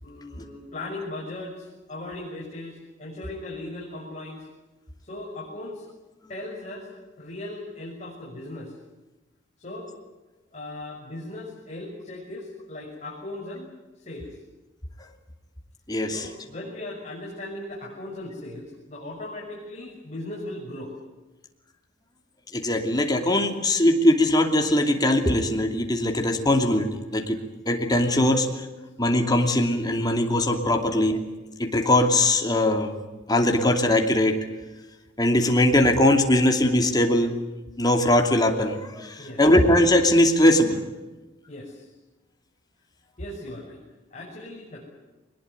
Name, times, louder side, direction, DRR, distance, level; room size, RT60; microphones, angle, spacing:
voice 1, 0.0-4.5 5.0-5.9 6.3-6.9 7.2-8.7 9.6-9.9 10.5-13.7 14.0-14.4 16.1-20.9 39.2-39.4 41.5-41.9 43.2-43.8 44.1-44.9, left 1 dB, 40° left, -4 dB, 6.3 m, -38 dB
voice 2, 15.9-16.3 22.5-27.4 27.7-28.5 29.0-31.2 31.6-32.9 33.3-34.4 35.2-37.3 37.8-40.8, left 1 dB, 20° left, 3 dB, 2.8 m, -21 dB
22.5 x 20.5 x 9.5 m, 1.1 s
head